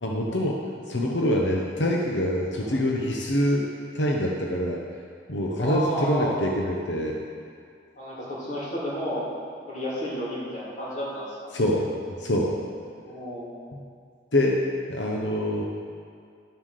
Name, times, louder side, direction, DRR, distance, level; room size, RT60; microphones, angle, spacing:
voice 1, 0.0-3.7 3.9-4.8 5.3-7.2 11.5-12.6 13.7-13.8 14.3-15.6, left 1 dB, 85° left, 0 dB, 1.0 m, -25 dB
voice 2, 5.6-6.4 7.9-9.3 9.7-11.6 13.0-13.5, equal, 40° left, -7 dB, 3.2 m, -31 dB
11.5 x 7.5 x 6.7 m, 2.2 s
head